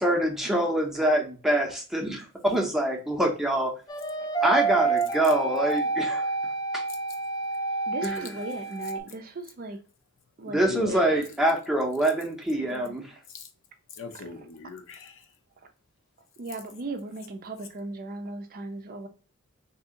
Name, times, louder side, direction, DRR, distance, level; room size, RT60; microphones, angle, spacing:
voice 1, 0.0-3.7 4.4-6.2 6.7-6.8 8.0-8.2 10.5-13.0, right 1 dB, ahead, 0 dB, 0.7 m, -25 dB
sound 1, 3.9-9.0, right 4 dB, 20° left, 0.3 m, -28 dB
voice 2, 7.9-9.8 10.4-10.6 10.9-11.2 12.6-12.9 16.4-19.1, right 2 dB, 40° right, 6 dB, 0.5 m, -37 dB
voice 3, 10.6-11.2 13.3-13.5 13.9-15.3, left 4 dB, 60° left, 5 dB, 0.7 m, -39 dB
2.8 x 2.6 x 3.7 m, 0.36 s
head